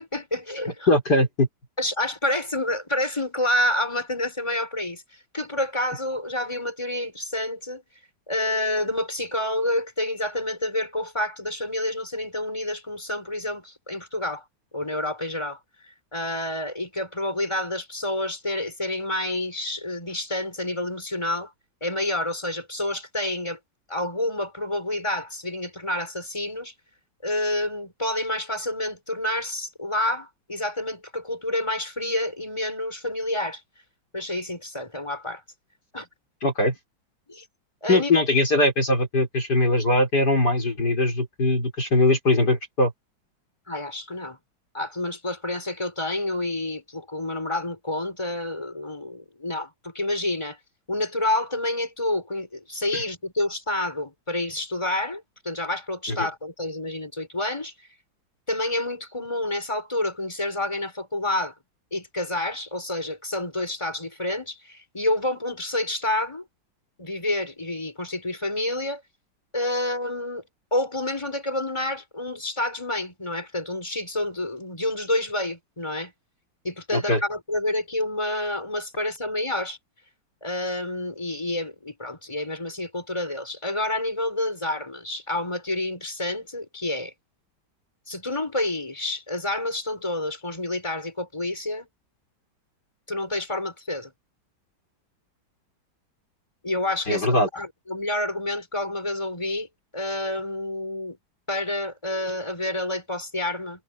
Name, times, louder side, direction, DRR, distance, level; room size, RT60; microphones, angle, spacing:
voice 1, 0.0-0.9 1.8-5.0 5.3-7.8 8.3-14.4 14.7-15.6 16.1-21.5 21.8-23.6 23.9-26.7 27.2-33.6 34.1-35.4 35.9-36.1 37.3-37.4 37.8-38.3 43.7-44.4 44.7-50.6 50.9-57.7 58.5-61.5 61.9-66.4 67.0-69.0 69.5-70.4 70.7-76.1 76.6-79.8 80.4-87.1 88.1-91.9 93.1-94.1 96.6-99.7 99.9-101.2 101.5-103.8, left 1 dB, 15° left, 6.6 m, -28 dB
voice 2, 0.9-1.5 36.4-36.7 37.9-42.9 56.2-56.3 76.9-77.2 97.1-97.5, left 2 dB, 55° left, 5.4 m, -21 dB
omnidirectional pair, 2.1 m